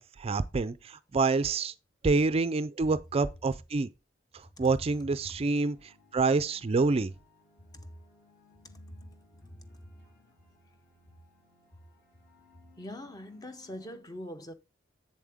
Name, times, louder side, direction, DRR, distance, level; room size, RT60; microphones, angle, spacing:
voice 1, 0.0-1.7 2.0-3.9 4.3-7.1, right 3 dB, 30° right, 0.4 m, -27 dB
sound 1, 4.8-14.0, left 3 dB, 55° left, 3.6 m, -63 dB
voice 2, 8.6-9.9 12.8-14.5, left 1 dB, 20° left, 0.8 m, -44 dB
7.7 x 7.2 x 3.5 m
head